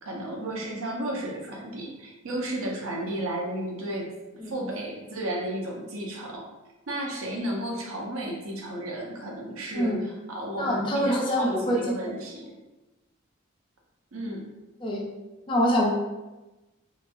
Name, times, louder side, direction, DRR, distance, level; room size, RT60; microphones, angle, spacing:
voice 1, 0.0-4.1 4.4-6.4 6.9-12.6 14.1-14.5, right 1 dB, 90° right, 0 dB, 0.6 m, -33 dB
voice 2, 10.6-11.8 14.8-15.0 15.5-15.9, equal, 25° left, -2 dB, 0.3 m, -25 dB
2.9 x 2.2 x 2.5 m, 1.1 s
head